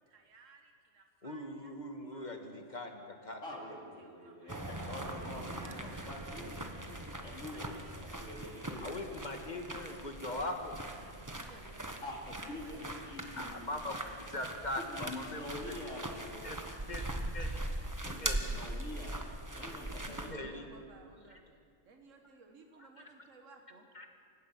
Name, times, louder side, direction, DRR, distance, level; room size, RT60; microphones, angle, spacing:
voice 1, 0.1-1.7 2.1-2.3 3.5-3.6 4.0-4.6 5.4-6.4 7.5-8.2 8.5-8.7 10.2-10.5 10.8-12.0 12.3-12.8 18.2-18.3 20.2-21.5 21.8-23.9, right 3 dB, 85° right, 4 dB, 1.8 m, -59 dB
voice 2, 1.2-3.6 8.8-10.8 13.4-15.7 16.4-16.6 16.9-18.5 20.3-20.7 21.3-21.4 22.8-22.9 23.9-24.1, left 1 dB, 35° left, 4 dB, 1.9 m, -41 dB
voice 3, 3.4-9.3 12.0-13.8 14.8-16.7 18.0-18.2 18.5-20.5, left 1 dB, 85° left, -2 dB, 3.5 m, -46 dB
sound 1, 4.5-20.3, right 1 dB, 15° right, 1.2 m, -41 dB
28.5 x 16.0 x 6.0 m, 2.2 s
omnidirectional pair, 1.3 m